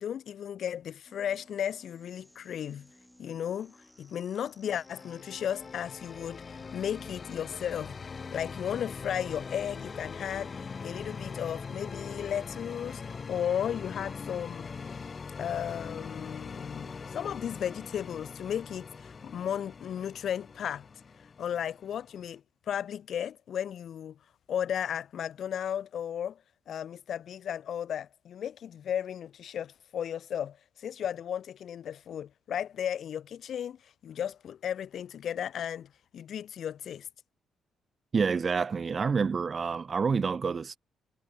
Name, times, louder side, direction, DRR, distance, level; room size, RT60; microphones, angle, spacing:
voice 1, 0.0-2.9 3.2-13.0 13.3-14.7 15.4-20.9 21.4-22.4 22.7-24.2 24.5-26.4 26.7-37.1, left 9 dB, 65° left, 1.1 m, -35 dB
sound 1, 1.1-11.5, equal, ahead, 5.4 m, -60 dB
sound 2, 4.6-22.4, left 5 dB, 35° left, 1.2 m, -42 dB
voice 2, 38.1-40.8, right 5 dB, 40° right, 0.6 m, -28 dB
cardioid pair, 90°, 0 cm